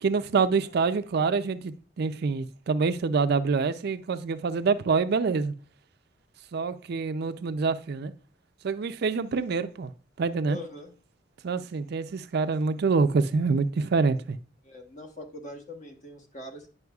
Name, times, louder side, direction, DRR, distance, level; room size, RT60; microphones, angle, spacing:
voice 1, 0.0-5.5 6.5-8.1 8.6-9.9 10.2-10.6 11.4-14.4, right 4 dB, 60° right, 0.4 m, -26 dB
voice 2, 10.4-10.9 14.6-16.7, left 1 dB, 40° left, 1.1 m, -42 dB
9.3 x 5.5 x 2.3 m
head